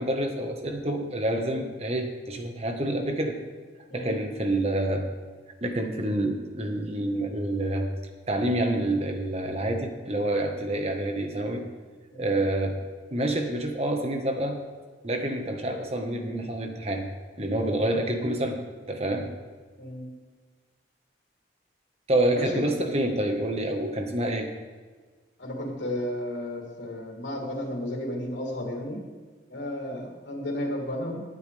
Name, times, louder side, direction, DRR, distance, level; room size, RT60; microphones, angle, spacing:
voice 1, 0.0-3.4 3.9-5.1 5.6-7.9 8.3-11.7 12.1-12.8 13.1-14.6 15.0-17.1 17.4-18.6 18.9-19.3 22.1-24.5, right 1 dB, 35° right, 4 dB, 1.5 m, -27 dB
voice 2, 22.3-22.9 25.4-29.0 29.5-31.2, left 1 dB, 80° left, -1 dB, 3.3 m, -33 dB
19.5 x 9.2 x 3.5 m, 1.5 s
head